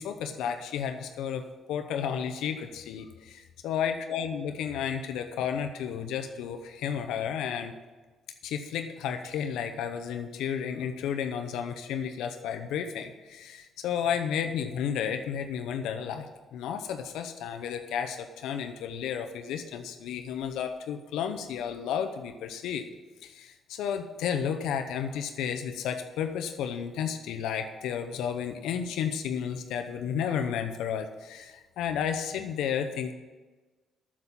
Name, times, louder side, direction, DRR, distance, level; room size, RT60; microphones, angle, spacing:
voice 1, 0.0-1.4 1.7-7.7 8.4-16.3 16.5-22.8 23.2-33.1, left 8 dB, 85° left, 6 dB, 0.7 m, -32 dB
8.1 x 7.5 x 8.6 m, 1.3 s
cardioid pair, 90°, 0 cm